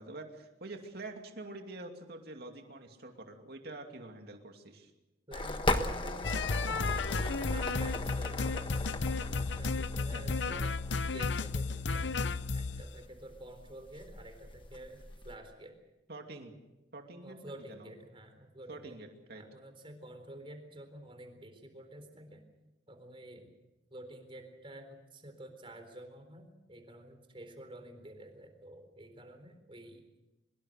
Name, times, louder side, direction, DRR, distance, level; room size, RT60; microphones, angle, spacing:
voice 1, 0.0-4.9 9.8-10.4 16.1-16.6 16.9-17.9 18.7-19.4, right 2 dB, 55° right, 4 dB, 2.7 m, -46 dB
sound 1, 5.3-15.4, left 2 dB, 25° left, 1.4 m, -39 dB
voice 2, 5.3-10.7 11.1-12.1 12.5-15.7 17.2-19.0 19.3-22.4 22.9-23.5 23.9-30.0, right 1 dB, 30° right, 6 dB, 4.0 m, -50 dB
sound 2, 6.2-12.8, left 4 dB, 70° left, 0.7 m, -33 dB
24.0 x 22.0 x 6.7 m, 0.99 s
head